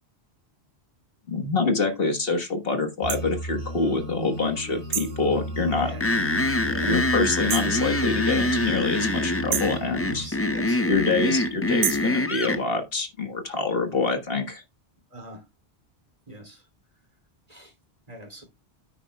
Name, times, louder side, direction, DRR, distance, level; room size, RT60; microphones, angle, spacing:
voice 1, 1.3-5.9 6.9-10.3 10.9-14.6, left 3 dB, 60° left, 1.7 m, -26 dB
sound 1, 3.0-10.3, equal, 35° left, 4.4 m, -35 dB
sound 2, 3.1-3.2 4.9-5.2 7.5-7.8 9.5-9.8 11.8-12.1, right 9 dB, 75° right, 1.0 m, -28 dB
sound 3, 6.0-12.6, left 2 dB, 15° left, 0.5 m, -25 dB
voice 2, 10.1-11.1 15.1-15.4 16.3-16.6 17.5-17.7 18.1-18.4, right 1 dB, 35° right, 3.0 m, -42 dB
9.6 x 9.5 x 2.2 m
omnidirectional pair, 1.1 m